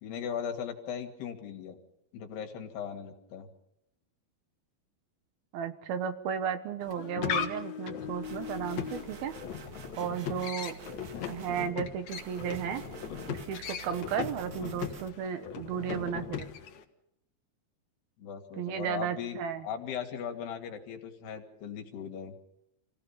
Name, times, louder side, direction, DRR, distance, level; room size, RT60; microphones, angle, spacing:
voice 1, 0.0-1.8 2.1-3.5 18.2-19.4 19.6-22.4, left 8 dB, 80° left, 4 dB, 3.9 m, -38 dB
voice 2, 5.5-9.3 10.0-10.8 11.3-12.8 13.3-16.5 18.6-19.7, right 8 dB, 75° right, 9 dB, 3.0 m, -34 dB
sound 1, 6.8-16.8, left 8 dB, 60° left, 2.2 m, -38 dB
sound 2, 8.2-11.7 12.1-15.1, right 6 dB, 55° right, 1.5 m, -49 dB
27.5 x 17.0 x 5.7 m, 0.82 s
omnidirectional pair, 4.7 m